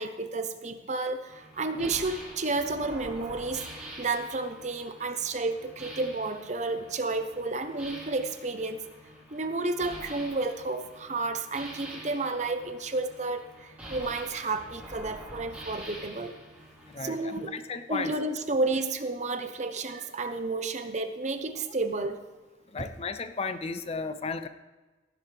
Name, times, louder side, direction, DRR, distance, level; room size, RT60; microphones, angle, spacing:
voice 1, 0.0-3.7 4.0-8.8 9.3-16.3 17.0-17.5 17.9-22.2 22.8-22.9, right 3 dB, 40° right, 8 dB, 0.8 m, -31 dB
sound 1, 1.3-17.4, right 1 dB, 10° right, 4.6 m, -46 dB
voice 2, 16.9-18.1 22.7-24.5, left 4 dB, 30° left, 10 dB, 0.5 m, -34 dB
17.0 x 10.5 x 3.4 m, 1.2 s
head